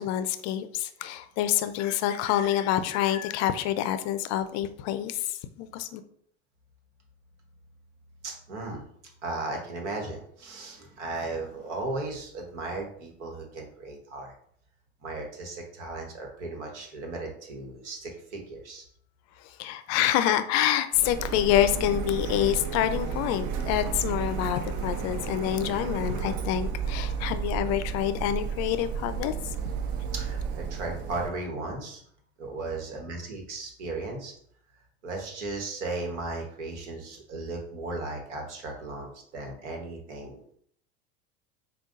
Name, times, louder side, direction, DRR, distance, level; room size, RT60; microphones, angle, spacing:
voice 1, 0.0-6.0 19.4-29.3, left 11 dB, 50° left, 11 dB, 0.4 m, -27 dB
voice 2, 8.2-8.9 9.2-14.3 15.0-18.8 30.1-32.0 32.4-34.3 35.0-40.4, right 2 dB, 85° right, 1 dB, 1.2 m, -36 dB
Printer, 20.9-31.3, right 6 dB, 60° right, 0.7 m, -32 dB
5.1 x 2.3 x 2.5 m, 0.64 s
hypercardioid pair, 90°, 34 cm